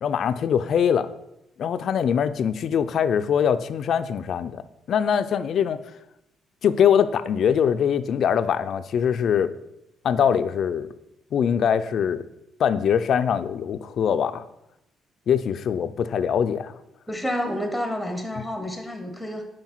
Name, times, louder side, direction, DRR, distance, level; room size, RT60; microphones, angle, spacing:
voice 1, 0.0-1.1 1.6-5.8 6.6-9.5 10.0-10.9 11.3-12.2 12.6-14.4 15.3-16.7, left 8 dB, 65° left, 12 dB, 0.4 m, -22 dB
voice 2, 17.1-19.4, equal, ahead, 5 dB, 0.9 m, -29 dB
5.6 x 4.9 x 4.5 m, 0.86 s
cardioid pair, 90°, 0 cm